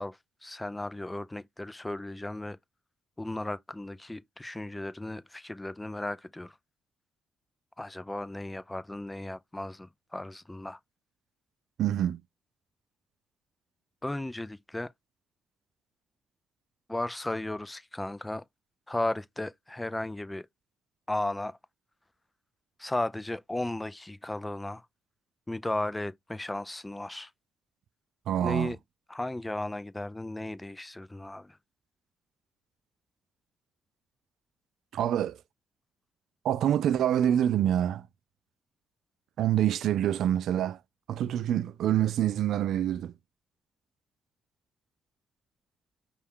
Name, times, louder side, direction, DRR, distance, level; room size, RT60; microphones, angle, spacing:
voice 1, 0.0-2.6 3.2-6.6 7.8-10.8 14.0-14.9 16.9-18.4 18.9-20.5 21.1-21.6 22.8-24.9 25.5-27.3 28.4-28.8 29.1-31.6, left 1 dB, 10° left, 0.4 m, -35 dB
voice 2, 11.8-12.2 28.3-28.7 34.9-35.4 36.4-38.1 39.4-40.8 41.1-43.1, right 11 dB, 75° right, 0.3 m, -26 dB
5.3 x 2.4 x 3.6 m
cardioid pair, 90°, 0 cm